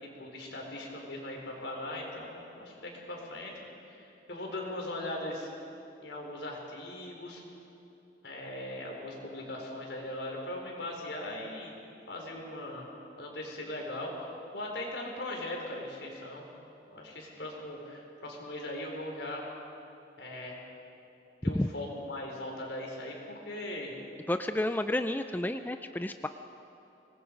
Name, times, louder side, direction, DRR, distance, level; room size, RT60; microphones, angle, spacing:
voice 1, 0.0-3.5 3.8-5.5 6.0-7.4 8.2-11.7 12.1-12.9 13.2-16.5 16.9-19.5 20.2-20.6 21.4-23.9, left 1 dB, 80° left, -1 dB, 4.4 m, -39 dB
voice 2, 24.3-26.3, left 1 dB, 10° left, 9 dB, 0.4 m, -31 dB
25.0 x 20.0 x 5.3 m, 2.9 s
head